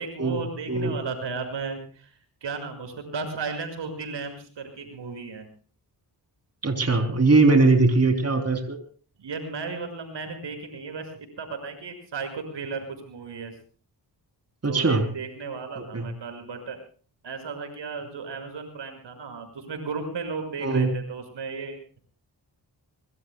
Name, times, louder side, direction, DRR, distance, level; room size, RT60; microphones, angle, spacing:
voice 1, 0.0-2.1 2.4-5.5 9.2-13.5 14.7-16.8 17.2-22.0, right 4 dB, 90° right, 5 dB, 6.4 m, -35 dB
voice 2, 6.6-8.8 14.6-15.0 15.8-16.1 20.6-20.9, right 3 dB, 35° right, 5 dB, 3.6 m, -20 dB
25.5 x 22.5 x 2.3 m, 0.41 s
wide cardioid pair, 90°, 42 cm